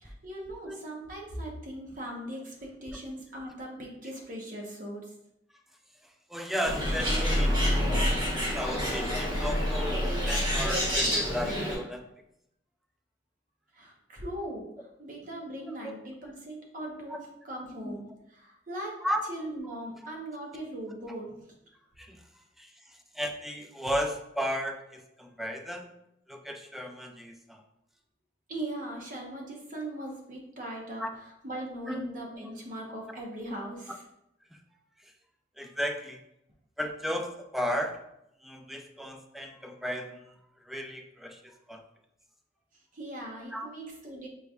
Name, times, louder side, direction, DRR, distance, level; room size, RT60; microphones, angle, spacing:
voice 1, 0.0-5.1 13.7-14.7 15.0-18.1 18.3-19.0 19.3-21.4 28.5-34.0 42.9-44.3, right 1 dB, 50° right, -1 dB, 0.9 m, -39 dB
voice 2, 6.3-7.6 8.5-12.0 15.8-15.9 17.1-17.2 17.8-17.9 19.0-19.2 22.0-22.2 22.6-22.7 23.2-25.9 26.3-27.6 31.0-31.1 31.9-32.0 35.6-36.2 36.8-38.0 38.4-40.2 40.7-41.4 41.7-41.8 43.5-43.7, equal, ahead, 4 dB, 0.4 m, -34 dB
Bird, 6.7-11.7, equal, 25° right, 1.3 m, -27 dB
5.5 x 3.3 x 2.3 m, 0.81 s
head